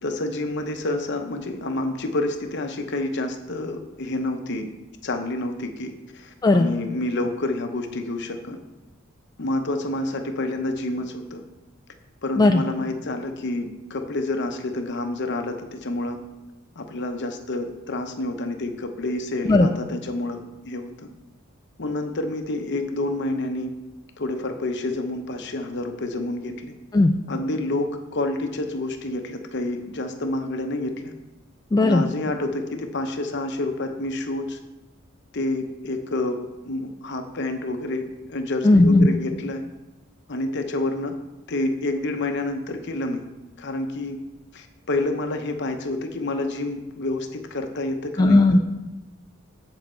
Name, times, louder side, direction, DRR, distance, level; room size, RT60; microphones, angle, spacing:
voice 1, 0.0-4.7 5.0-8.6 9.4-11.4 12.2-16.2 16.8-20.9 21.8-23.7 24.2-26.7 27.3-31.1 31.8-34.6 35.3-36.4 36.6-38.0 38.3-39.6 40.3-41.2 41.5-43.2 43.6-44.2 44.5-48.6, left 2 dB, 55° left, 6 dB, 0.8 m, -28 dB
voice 2, 31.7-32.0 38.6-39.1 48.2-48.6, left 2 dB, 20° left, 4 dB, 0.3 m, -16 dB
7.5 x 7.1 x 4.4 m, 1.0 s
head